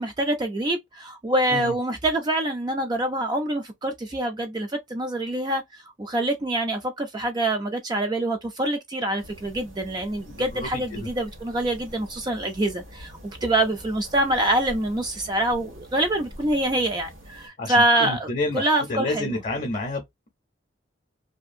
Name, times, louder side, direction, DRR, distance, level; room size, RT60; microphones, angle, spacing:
voice 1, 0.0-18.3 18.5-19.3, right 1 dB, 20° right, 0.3 m, -25 dB
sound 1, 9.2-17.5, equal, 85° right, 1.5 m, -45 dB
voice 2, 10.3-11.1 17.6-20.0, left 2 dB, 40° left, 0.6 m, -30 dB
2.7 x 2.4 x 2.4 m
head